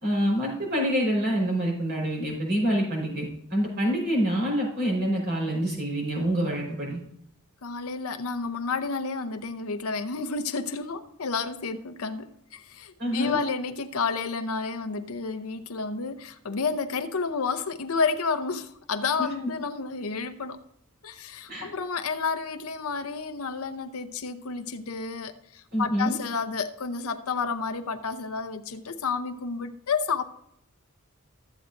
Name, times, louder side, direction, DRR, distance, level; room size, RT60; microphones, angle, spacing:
voice 1, 0.0-7.0 13.0-13.4 19.2-19.3 21.5-21.7 25.7-26.1, equal, 45° right, 4.4 m, -26 dB
voice 2, 7.6-20.6 21.0-30.2, left 4 dB, 70° left, 0.7 m, -30 dB
14.0 x 8.0 x 2.6 m
head